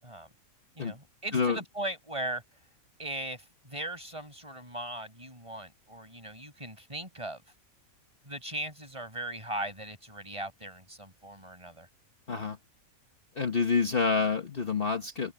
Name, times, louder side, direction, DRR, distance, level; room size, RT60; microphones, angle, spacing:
voice 1, 0.8-2.4 3.0-7.4 8.2-11.9, right 1 dB, 20° right, 6.3 m, -38 dB
voice 2, 13.3-15.3, left 5 dB, 40° left, 1.4 m, -27 dB
omnidirectional pair, 1.5 m